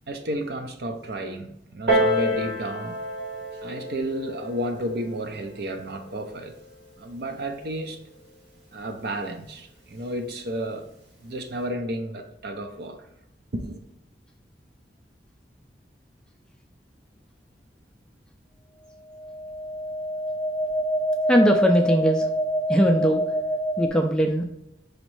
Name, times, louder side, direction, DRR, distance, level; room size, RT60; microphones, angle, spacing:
voice 1, 0.1-3.0 3.6-6.6 7.0-8.0 8.7-10.9 11.2-13.1 13.5-13.8, right 1 dB, 65° right, 0.7 m, -32 dB
Piano, 1.9-7.1 7.9-8.0, equal, 80° right, 1.7 m, -29 dB
sound 1, 19.1-23.9, right 1 dB, 10° right, 0.8 m, -26 dB
voice 2, 21.3-22.2 22.7-23.2 23.8-24.4, equal, 5° left, 0.4 m, -20 dB
5.0 x 3.1 x 3.1 m
head